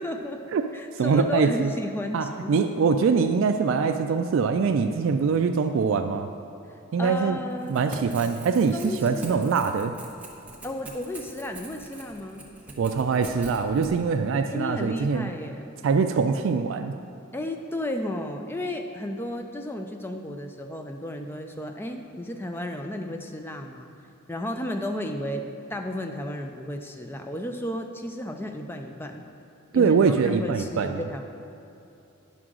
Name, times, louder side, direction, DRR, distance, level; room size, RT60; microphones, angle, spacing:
voice 1, 0.0-0.4 0.7-2.6 7.0-7.7 8.7-9.4 10.6-12.4 14.5-15.7 17.3-23.9 24.3-29.2 29.7-29.9 30.2-31.2, left 1 dB, 10° left, 5 dB, 0.4 m, -33 dB
voice 2, 1.0-1.7 2.1-6.3 6.9-7.4 7.7-10.0 12.8-15.3 15.8-16.9 29.7-31.0, right 5 dB, 65° right, 7 dB, 0.3 m, -23 dB
Crackle / Tearing, 7.5-13.9, right 2 dB, 5° right, 0.8 m, -43 dB
10.0 x 6.2 x 3.7 m, 2.8 s
head